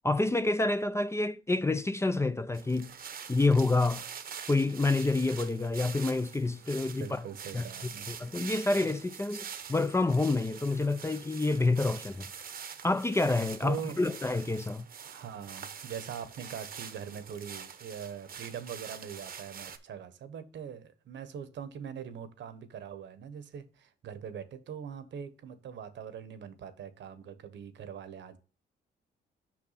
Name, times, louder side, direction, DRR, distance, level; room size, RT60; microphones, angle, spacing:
voice 1, 0.0-2.9 3.3-4.0 4.5-7.2 7.5-7.6 8.1-12.3 12.8-14.9, left 2 dB, 15° left, 0.5 m, -28 dB
sound 1, 2.5-19.8, right 7 dB, 50° right, 0.9 m, -45 dB
voice 2, 7.0-8.1 13.6-14.0 15.0-28.4, right 8 dB, 65° right, 1.1 m, -42 dB
6.1 x 5.8 x 4.1 m
cardioid pair, 90°, 20 cm